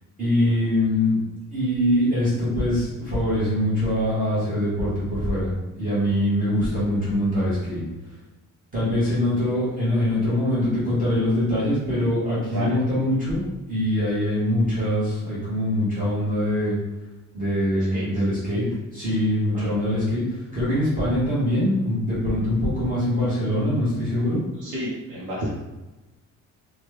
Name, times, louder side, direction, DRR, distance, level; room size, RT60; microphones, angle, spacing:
voice 1, 0.2-1.2 1.5-7.8 8.7-16.8 17.3-18.7 18.9-24.4, left 1 dB, 25° right, -11 dB, 1.2 m, -23 dB
voice 2, 17.7-18.1 19.5-19.8 24.6-25.5, equal, 60° right, -7 dB, 0.8 m, -31 dB
3.1 x 2.2 x 3.2 m, 1.1 s
cardioid pair, 180°, 34 cm